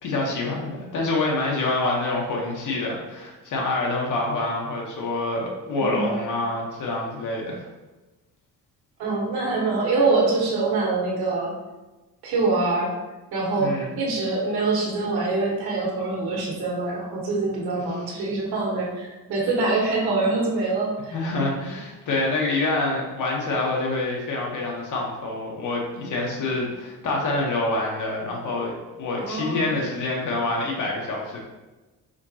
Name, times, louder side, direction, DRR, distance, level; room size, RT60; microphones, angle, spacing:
voice 1, 0.0-7.6 13.6-13.9 21.1-31.4, left 2 dB, 55° left, -1 dB, 1.1 m, -26 dB
voice 2, 5.8-6.2 9.0-11.5 12.2-12.9 13.3-21.1 29.2-29.7, right 3 dB, 90° right, -3 dB, 1.3 m, -24 dB
5.0 x 2.9 x 2.8 m, 1.1 s
cardioid pair, 160°, 37 cm